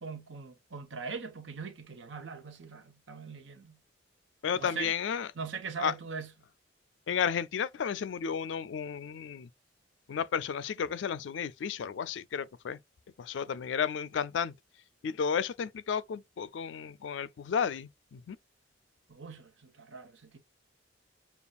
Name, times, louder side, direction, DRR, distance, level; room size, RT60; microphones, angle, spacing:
voice 1, 0.0-3.8 4.6-4.9 5.4-6.3 19.1-20.4, right 5 dB, 85° right, 0.9 m, -41 dB
voice 2, 4.4-5.3 5.8-5.9 7.1-9.5 10.1-12.8 13.2-14.5 15.0-18.4, left 7 dB, 75° left, 0.4 m, -32 dB
6.9 x 2.4 x 2.3 m
head